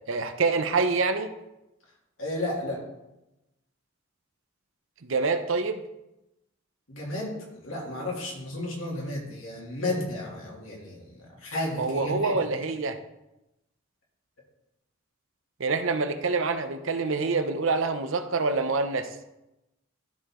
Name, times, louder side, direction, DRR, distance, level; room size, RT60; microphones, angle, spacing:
voice 1, 0.1-1.3 5.0-5.8 11.8-13.0 15.6-19.1, right 4 dB, 75° right, 9 dB, 0.7 m, -26 dB
voice 2, 2.2-2.8 6.9-7.3 7.6-12.4, left 1 dB, 80° left, -3 dB, 2.8 m, -33 dB
13.0 x 4.8 x 3.7 m, 0.92 s
head